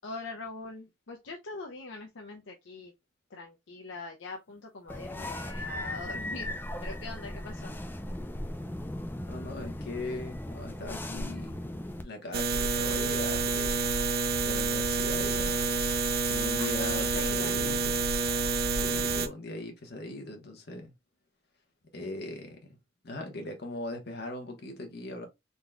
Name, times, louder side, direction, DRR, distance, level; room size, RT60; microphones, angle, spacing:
voice 1, 0.0-2.9 3.3-6.5 6.8-7.7 16.6-18.5, left 3 dB, 70° left, 0.6 m, -43 dB
sound 1, 4.9-12.0, left 1 dB, 10° left, 0.5 m, -37 dB
voice 2, 9.2-11.6 12.0-14.0 14.4-15.7 16.3-18.0 18.7-20.9 21.9-22.8 23.0-25.3, left 2 dB, 55° left, 1.1 m, -40 dB
sound 2, 12.3-19.3, right 4 dB, 50° right, 0.4 m, -28 dB
3.9 x 3.6 x 2.2 m
head